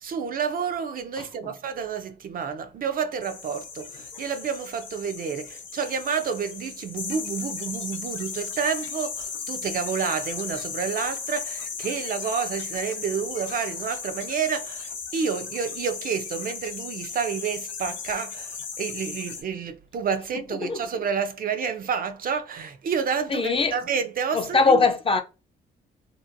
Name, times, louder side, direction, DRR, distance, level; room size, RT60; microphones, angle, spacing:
voice 1, 0.0-24.9, right 6 dB, 45° right, 0.4 m, -29 dB
voice 2, 1.2-1.5 20.6-20.8 23.3-23.7 24.3-25.2, left 4 dB, 25° left, 0.5 m, -22 dB
sound 1, 3.2-19.4, left 6 dB, 70° left, 0.7 m, -36 dB
2.8 x 2.6 x 2.5 m
cardioid pair, 90°, 20 cm